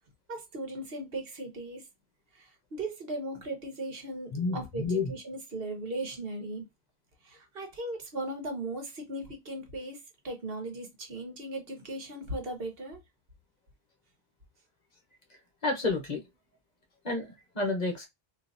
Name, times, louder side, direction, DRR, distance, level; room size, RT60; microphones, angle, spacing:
voice 1, 0.3-1.9 2.3-6.7 7.2-10.0 10.2-13.0, right 1 dB, 65° right, 1.2 m, -37 dB
voice 2, 4.3-5.1 15.6-16.2 17.0-18.1, left 3 dB, 45° left, 1.0 m, -30 dB
3.8 x 2.7 x 2.6 m
omnidirectional pair, 1.1 m